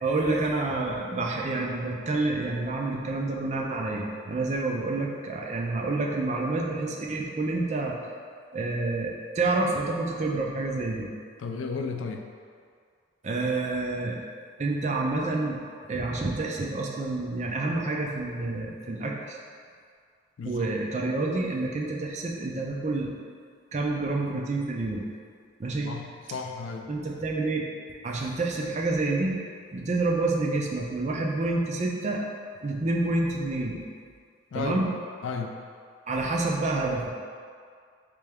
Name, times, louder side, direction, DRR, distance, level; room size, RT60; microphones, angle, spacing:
voice 1, 0.0-8.0 8.5-11.1 13.2-14.2 14.6-15.6 15.9-19.4 20.4-23.1 23.7-25.0 25.6-25.9 26.9-27.6 28.0-29.4 29.7-32.2 32.6-33.8 34.5-34.9 36.1-37.1, right 2 dB, 35° right, -1 dB, 0.4 m, -28 dB
voice 2, 11.4-12.3 20.4-20.7 25.9-26.9 34.5-34.9 35.2-35.5, left 4 dB, 70° left, 4 dB, 0.3 m, -33 dB
3.3 x 3.3 x 3.4 m, 2.1 s
head